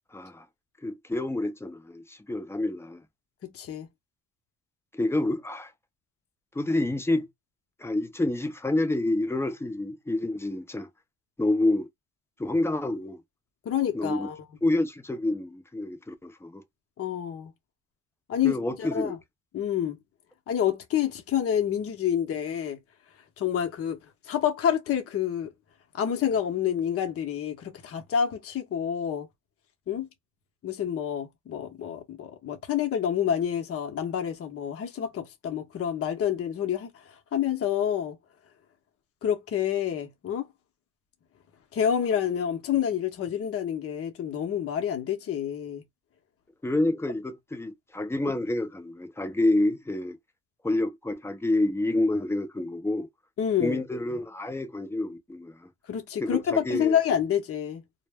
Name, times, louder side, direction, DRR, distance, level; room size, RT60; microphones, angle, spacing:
voice 1, 0.1-0.4 0.8-3.0 4.9-5.7 6.5-7.3 7.8-10.9 11.4-11.9 12.4-13.2 13.9-14.3 14.6-16.6 18.4-19.1 46.6-50.2 50.6-53.1 53.6-55.7 56.2-57.0, left 2 dB, 10° left, 0.5 m, -28 dB
voice 2, 3.5-3.9 13.6-14.4 17.0-17.5 18.3-19.2 19.5-20.0 20.5-22.8 23.4-24.0 24.2-25.5 26.0-29.3 29.9-30.1 30.6-37.0 37.3-38.2 39.2-40.5 41.7-45.8 53.4-53.8 55.9-57.8, left 9 dB, 50° left, 0.7 m, -28 dB
2.1 x 2.0 x 3.3 m
cardioid pair, 90°, 30 cm